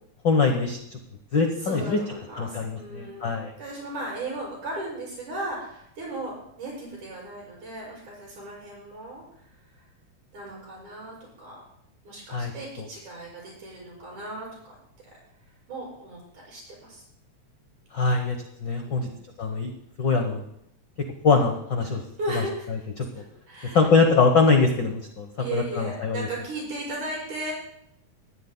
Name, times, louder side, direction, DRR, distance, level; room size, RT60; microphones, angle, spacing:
voice 1, 0.2-0.8 1.3-2.0 2.4-3.5 12.3-12.5 17.9-18.4 18.6-19.1 19.4-19.7 20.0-20.4 21.2-22.0 23.0-23.1 23.7-26.3, left 4 dB, 90° left, 4 dB, 1.0 m, -22 dB
voice 2, 1.5-3.3 3.6-9.8 10.3-11.7 12.0-14.8 15.7-17.0 18.8-19.1 22.2-22.9 23.1-23.8 25.4-27.5, right 2 dB, 70° right, -5 dB, 7.9 m, -36 dB
21.5 x 13.5 x 2.2 m, 0.74 s
omnidirectional pair, 3.7 m